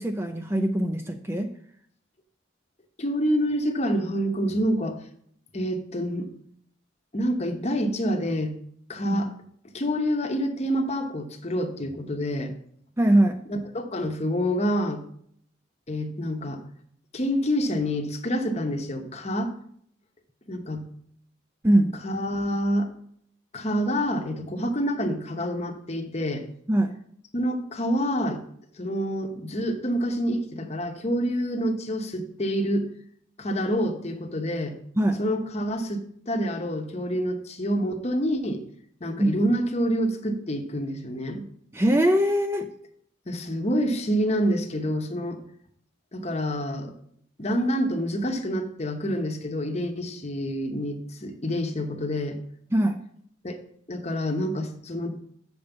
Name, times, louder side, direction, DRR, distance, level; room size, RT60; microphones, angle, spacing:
voice 1, 0.0-1.5 9.1-9.2 13.0-13.4 21.6-21.9 26.7-26.9 35.0-35.2 39.2-39.3 41.7-42.7 52.7-53.0, right 1 dB, 15° right, 7 dB, 0.4 m, -21 dB
voice 2, 3.0-5.0 5.5-6.3 7.1-8.5 8.9-9.3 9.7-12.5 13.5-15.0 15.9-16.6 17.1-19.5 20.5-20.8 22.0-22.9 23.5-26.4 27.3-28.4 28.8-32.9 33.4-34.7 35.2-38.6 39.0-41.4 43.3-45.4 46.1-46.9 47.4-52.4 53.4-53.6 53.9-55.2, equal, 30° left, 5 dB, 0.9 m, -27 dB
6.5 x 5.2 x 7.0 m, 0.66 s
head